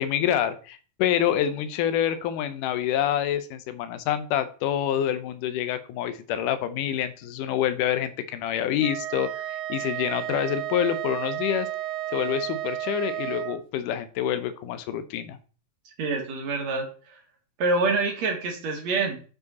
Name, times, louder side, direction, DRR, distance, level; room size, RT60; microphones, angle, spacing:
voice 1, 0.0-11.7 12.1-15.4, left 10 dB, 80° left, 12 dB, 2.3 m, -27 dB
Wind instrument woodwind instrument, 8.8-13.6, right 14 dB, 75° right, 1.9 m, -32 dB
voice 2, 16.0-17.2 17.6-19.2, right 3 dB, 60° right, 3 dB, 2.6 m, -26 dB
9.3 x 4.8 x 4.1 m, 0.39 s
omnidirectional pair, 3.8 m